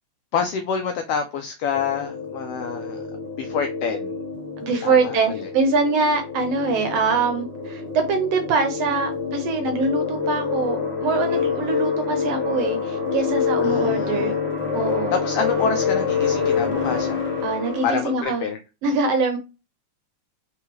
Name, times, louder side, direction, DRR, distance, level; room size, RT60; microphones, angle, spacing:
voice 1, 0.3-3.0 3.4-4.2 4.8-5.5 11.3-11.5 13.6-14.3 15.1-17.3 17.8-18.6, left 6 dB, 80° left, 1.3 m, -27 dB
sound 1, 1.7-18.2, left 6 dB, 15° left, 0.4 m, -26 dB
voice 2, 4.6-14.3 14.7-15.1 17.4-18.4 18.8-19.4, right 4 dB, 75° right, 1.6 m, -23 dB
4.8 x 3.6 x 3.0 m
omnidirectional pair, 3.3 m